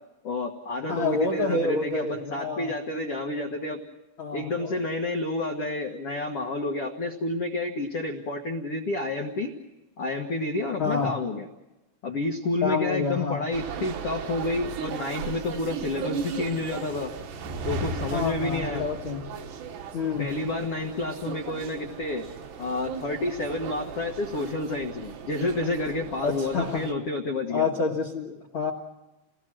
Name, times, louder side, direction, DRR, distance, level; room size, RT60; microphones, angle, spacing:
voice 1, 0.2-3.8 4.3-9.5 10.0-11.4 12.0-17.1 17.6-18.8 20.2-22.2 22.6-27.7, left 2 dB, 85° left, 2 dB, 1.3 m, -30 dB
voice 2, 0.9-2.7 4.2-4.7 5.9-6.0 10.8-11.2 12.6-13.5 18.1-19.3 19.9-20.3 26.2-26.9 27.5-28.7, left 4 dB, 70° left, 2 dB, 1.2 m, -28 dB
sound 1, 13.5-26.9, right 5 dB, 70° right, 3.6 m, -36 dB
29.0 x 19.0 x 6.3 m, 1.0 s
omnidirectional pair, 5.2 m